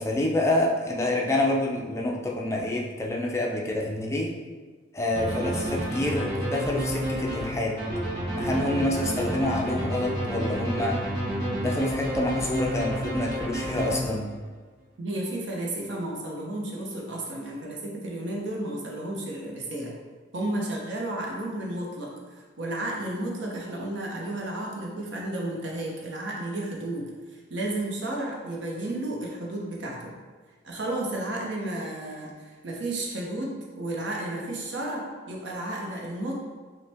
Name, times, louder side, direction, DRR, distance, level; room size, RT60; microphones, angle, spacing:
voice 1, 0.0-4.3 4.9-7.7 8.3-11.0 11.6-14.3, left 1 dB, 15° left, -2 dB, 0.4 m, -27 dB
sound 1, 5.1-14.5, right 1 dB, 25° right, 1.4 m, -30 dB
voice 2, 15.0-19.9 20.3-27.1 27.3-30.1 30.6-36.4, right 1 dB, 65° right, -2 dB, 0.7 m, -32 dB
5.2 x 2.1 x 3.4 m, 1.4 s
head